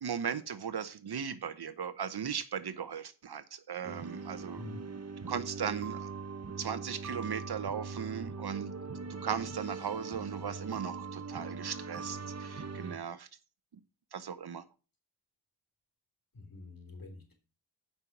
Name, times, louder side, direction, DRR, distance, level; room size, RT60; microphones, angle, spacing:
voice 1, 0.0-4.7 4.9-6.1 6.6-8.7 9.1-13.3 14.1-14.6, right 7 dB, 65° right, 14 dB, 1.0 m, -37 dB
sound 1, 3.8-13.0, right 4 dB, 35° right, 1.0 m, -41 dB
voice 2, 16.3-17.4, left 3 dB, 55° left, 4 dB, 3.5 m, -46 dB
8.8 x 5.7 x 6.1 m, 0.34 s
cardioid pair, 50°, 42 cm